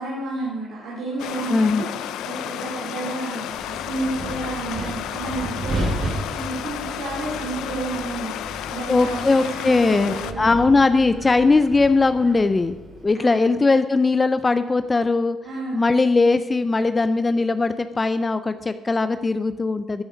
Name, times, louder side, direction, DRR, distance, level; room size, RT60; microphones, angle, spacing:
voice 1, 0.0-10.6 13.2-13.6 15.4-15.8, right 2 dB, 85° right, -4 dB, 2.9 m, -31 dB
Stream, 1.2-10.3, left 10 dB, 90° left, 0.6 m, -32 dB
voice 2, 1.5-1.8 8.9-12.8 13.0-15.4 15.7-20.0, left 3 dB, 25° left, 11 dB, 0.5 m, -19 dB
Wind, 3.5-13.0, right 1 dB, 60° right, 3.2 m, -34 dB
13.0 x 8.8 x 5.2 m, 1.1 s
cardioid pair, 90°, 0 cm